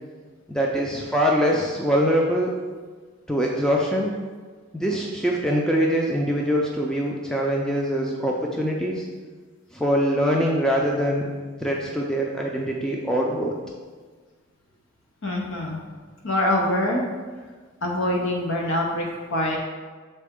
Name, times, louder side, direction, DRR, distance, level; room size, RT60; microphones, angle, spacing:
voice 1, 0.5-2.5 3.3-4.1 4.7-9.1 9.7-11.2 11.6-13.5, equal, 5° left, -2 dB, 0.4 m, -23 dB
voice 2, 15.2-15.8 16.2-17.0 17.8-19.6, left 1 dB, 65° left, -1 dB, 0.8 m, -24 dB
6.7 x 4.2 x 3.6 m, 1.5 s
head